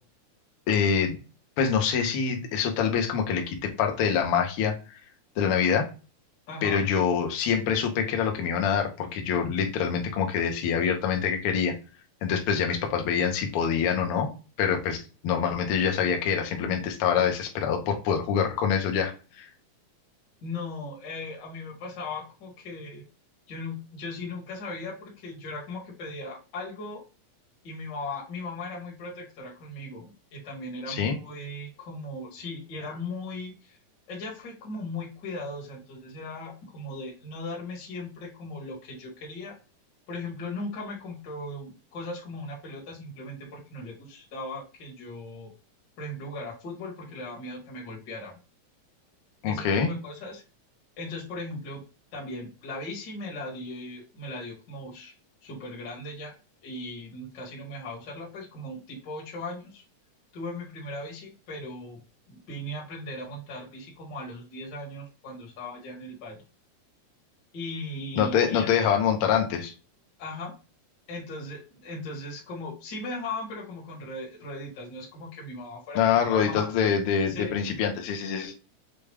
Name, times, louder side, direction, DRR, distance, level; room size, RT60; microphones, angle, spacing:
voice 1, 0.7-1.2 1.6-5.0 5.4-5.9 6.6-11.7 12.2-14.3 14.6-19.1 19.4-19.5 30.9-31.1 49.4-49.9 68.2-69.7 75.9-78.5, left 7 dB, 75° left, 3 dB, 1.3 m, -25 dB
voice 2, 6.5-6.8 20.4-23.0 23.5-27.0 27.6-33.8 34.1-39.6 40.1-45.5 46.0-48.4 49.5-50.4 51.0-51.8 52.1-55.1 55.4-56.3 56.6-59.8 60.3-62.0 62.3-66.4 67.5-68.7 70.2-70.5 71.1-76.7 77.3-77.5, left 2 dB, 45° left, -3 dB, 1.6 m, -38 dB
6.7 x 2.3 x 3.3 m, 0.33 s
omnidirectional pair, 3.6 m